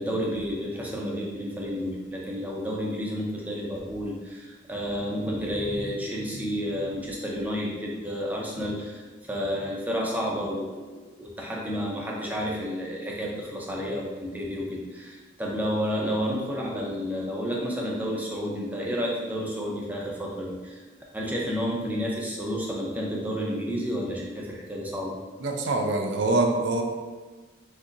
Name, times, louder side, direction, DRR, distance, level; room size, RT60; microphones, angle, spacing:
voice 1, 0.0-9.0 9.3-10.8 11.1-20.8 21.1-25.2, equal, 10° right, -3 dB, 0.6 m, -30 dB
voice 2, 25.4-26.8, right 2 dB, 85° right, 3 dB, 0.5 m, -24 dB
6.3 x 2.8 x 2.5 m, 1.4 s
head